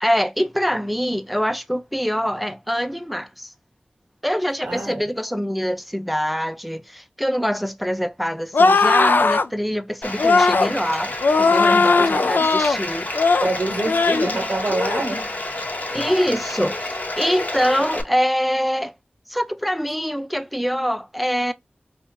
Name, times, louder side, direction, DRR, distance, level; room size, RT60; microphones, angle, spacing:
voice 1, 0.0-3.5 4.2-13.1 15.9-18.9 19.3-21.5, equal, ahead, 0.4 m, -24 dB
voice 2, 4.6-5.0 12.0-12.5 13.4-15.3, right 2 dB, 90° right, 0.8 m, -26 dB
sound 1, 8.5-9.5 10.2-10.7 11.2-12.8 13.1-13.5 13.9-14.3 14.7-15.0, left 4 dB, 75° left, 0.3 m, -17 dB
Bathtub (filling or washing), 10.0-18.0, left 2 dB, 55° left, 0.8 m, -29 dB
4.4 x 2.7 x 2.2 m
wide cardioid pair, 70°, 3 cm